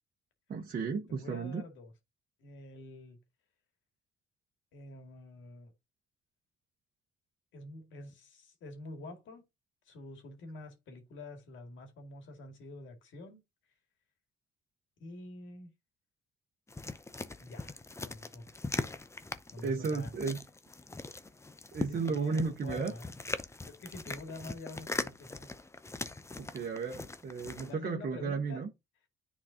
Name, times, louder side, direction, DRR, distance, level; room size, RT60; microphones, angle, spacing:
voice 1, 0.5-1.6 19.6-20.4 21.7-22.9 26.4-28.7, right 4 dB, 50° right, 1.1 m, -34 dB
voice 2, 1.1-1.9 2.4-3.2 4.7-5.7 7.5-9.4 9.9-13.4 15.0-15.7 17.4-18.5 19.5-20.1 21.8-23.1 23.7-25.5 27.6-28.6, left 2 dB, 75° left, 2.2 m, -47 dB
sound 1, 16.7-27.7, left 3 dB, 15° left, 0.6 m, -41 dB
9.9 x 4.2 x 2.8 m
cardioid pair, 90°, 20 cm